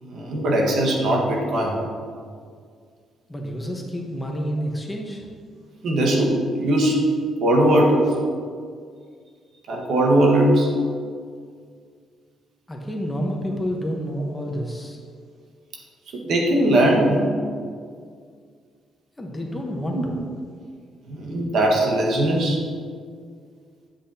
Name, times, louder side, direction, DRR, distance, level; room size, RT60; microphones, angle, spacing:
voice 1, 0.0-1.8 5.8-7.0 7.4-8.2 9.7-10.7 16.1-17.3 19.9-20.1 21.1-22.6, right 1 dB, 70° right, -1 dB, 1.5 m, -20 dB
voice 2, 3.3-5.2 12.7-15.0 19.2-20.1, equal, 15° left, 0 dB, 1.1 m, -29 dB
10.0 x 6.0 x 2.9 m, 2.1 s
cardioid pair, 90°, 0 cm